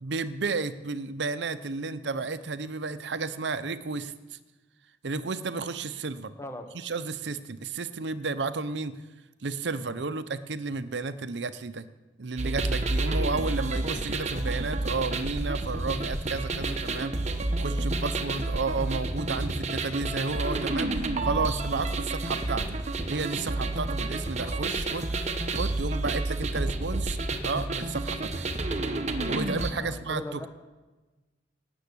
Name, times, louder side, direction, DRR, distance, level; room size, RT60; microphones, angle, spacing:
voice 1, 0.0-4.4 5.0-6.3 6.7-9.0 9.4-11.9 12.2-27.2 27.4-28.5 29.3-30.5, right 4 dB, 75° right, 13 dB, 0.7 m, -32 dB
voice 2, 6.4-6.7 29.7-30.5, left 1 dB, 15° left, 4 dB, 1.3 m, -38 dB
sound 1, 12.4-29.7, right 2 dB, 40° right, 1.1 m, -30 dB
18.5 x 7.1 x 8.5 m, 1.2 s
head